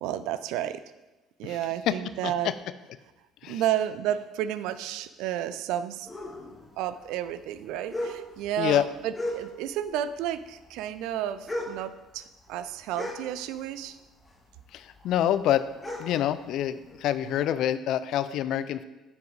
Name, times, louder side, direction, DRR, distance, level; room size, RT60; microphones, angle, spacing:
voice 1, 0.0-0.8 1.4-2.5 3.5-6.1 6.8-14.0, right 11 dB, 75° right, 14 dB, 0.4 m, -31 dB
sound 1, 6.1-9.9 10.1-13.9 14.2-17.4, left 1 dB, 20° left, 1.6 m, -37 dB
voice 2, 14.7-15.6 16.0-18.8, left 11 dB, 65° left, 14 dB, 0.4 m, -26 dB
9.7 x 4.6 x 4.0 m, 1.1 s
hypercardioid pair, 60°, 0 cm